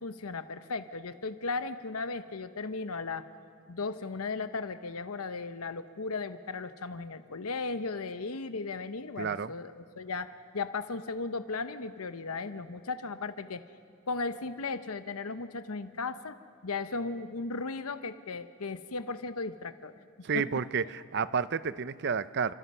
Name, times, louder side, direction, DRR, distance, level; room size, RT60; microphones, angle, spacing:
voice 1, 0.0-3.3 3.7-13.6 14.1-16.4 16.6-19.9 20.3-20.4, left 3 dB, 85° left, 11 dB, 0.9 m, -36 dB
voice 2, 9.2-9.5 20.2-22.5, right 6 dB, 50° right, 16 dB, 0.6 m, -30 dB
29.5 x 26.0 x 5.6 m, 2.4 s
head